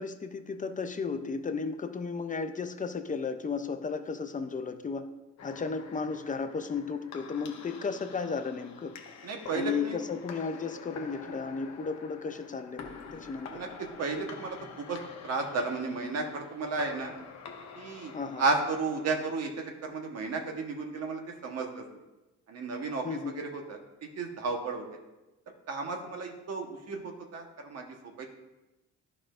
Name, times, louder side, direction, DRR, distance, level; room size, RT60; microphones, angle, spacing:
voice 1, 0.0-5.1 5.4-8.9 9.5-13.6 18.1-18.4 23.0-23.3, left 5 dB, 25° left, 9 dB, 0.6 m, -34 dB
sound 1, 5.4-19.4, left 5 dB, 65° left, 0.9 m, -47 dB
voice 2, 9.2-10.0 13.5-17.1 17.8-18.1 18.4-21.8 22.5-23.8 24.2-25.0 25.7-28.3, right 3 dB, 55° right, 3 dB, 1.3 m, -33 dB
11.5 x 4.8 x 2.5 m, 1.0 s
cardioid pair, 90°, 30 cm